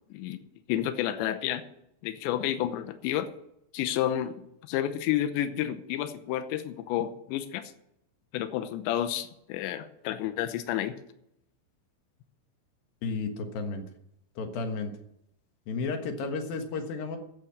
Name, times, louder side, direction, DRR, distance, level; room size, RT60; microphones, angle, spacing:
voice 1, 0.7-1.6 2.0-3.3 3.7-4.3 4.6-7.6 8.3-10.9, left 12 dB, 85° left, 10 dB, 3.1 m, -30 dB
voice 2, 13.0-13.8 14.4-14.9 15.7-17.2, left 4 dB, 65° left, 5 dB, 2.9 m, -32 dB
10.5 x 8.5 x 9.6 m, 0.78 s
omnidirectional pair, 5.3 m